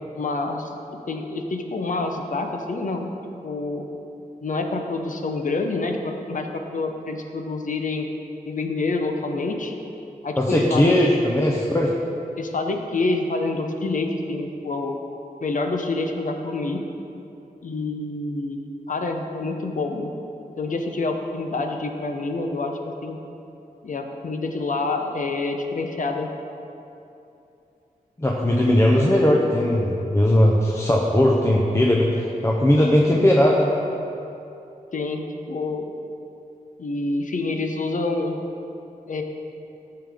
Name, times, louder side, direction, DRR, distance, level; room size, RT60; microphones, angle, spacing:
voice 1, 0.1-3.1 3.4-3.9 4.4-8.1 8.5-9.8 10.2-11.1 12.4-14.9 15.4-16.8 17.6-20.1 20.6-23.2 23.8-26.3 34.9-35.9 36.8-38.4 39.1-39.2, left 3 dB, 60° left, 4 dB, 0.8 m, -27 dB
voice 2, 10.4-11.9 28.2-33.8, left 1 dB, 20° left, -2 dB, 0.7 m, -19 dB
12.5 x 6.9 x 3.6 m, 2.8 s
wide cardioid pair, 100°, 15 cm